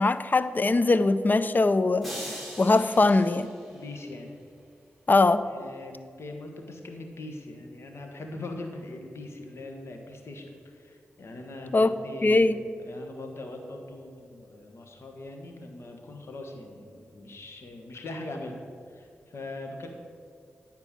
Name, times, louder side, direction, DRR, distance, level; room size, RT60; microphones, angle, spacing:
voice 1, 0.0-2.1 2.6-3.5 5.1-5.5 11.7-11.9 12.2-12.6, left 3 dB, 40° left, 13 dB, 0.5 m, -21 dB
sound 1, 2.0-4.3, equal, ahead, 2.7 m, -41 dB
voice 2, 3.7-4.3 5.5-12.5 12.8-18.6 18.9-19.9, left 2 dB, 70° left, 3 dB, 1.3 m, -41 dB
9.8 x 4.5 x 7.3 m, 2.3 s
cardioid pair, 40°, 5 cm